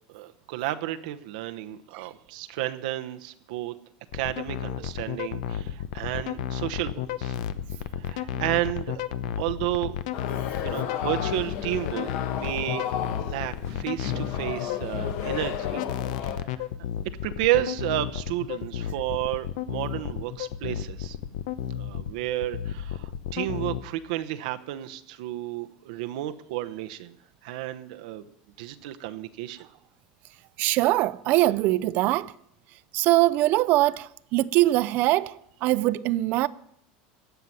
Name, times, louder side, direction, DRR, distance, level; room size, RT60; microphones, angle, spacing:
voice 1, 0.1-3.7 4.1-7.4 7.9-9.0 9.4-10.0 10.6-12.8 13.2-15.8 16.2-16.3 17.2-21.2 21.7-27.1 27.4-28.3 28.6-29.6, right 14 dB, 75° right, 0.8 m, -31 dB
sound 1, 4.1-23.8, left 11 dB, 75° left, 0.8 m, -32 dB
sound 2, 10.1-16.4, left 9 dB, 60° left, 1.3 m, -33 dB
voice 2, 30.6-32.3 32.9-36.5, right 17 dB, 50° right, 0.5 m, -22 dB
15.0 x 5.8 x 9.6 m
supercardioid pair, 135°, 4 cm